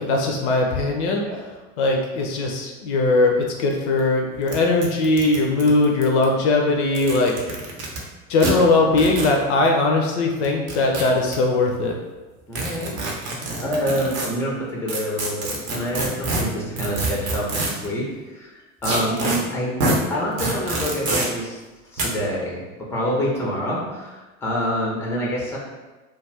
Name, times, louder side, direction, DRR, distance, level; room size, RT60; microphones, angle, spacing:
voice 1, 0.0-1.4 1.8-7.5 8.3-12.0, left 2 dB, 55° left, 1 dB, 0.5 m, -20 dB
sound 1, 3.7-3.8 4.0-4.1 4.5-4.6 4.8-6.2 6.8-8.0 8.4-8.5 9.0-9.3 10.4-11.3 12.5-14.3 14.9-17.9 18.8-19.4 19.8-20.0 20.4-21.3 22.0-22.1, right 2 dB, 35° right, 0.7 m, -26 dB
voice 2, 12.5-13.0 13.6-19.7 20.1-21.6 21.9-25.6, equal, 5° left, -3 dB, 0.5 m, -27 dB
2.3 x 2.3 x 3.2 m, 1.2 s
figure-of-eight pair, 80°, 41 cm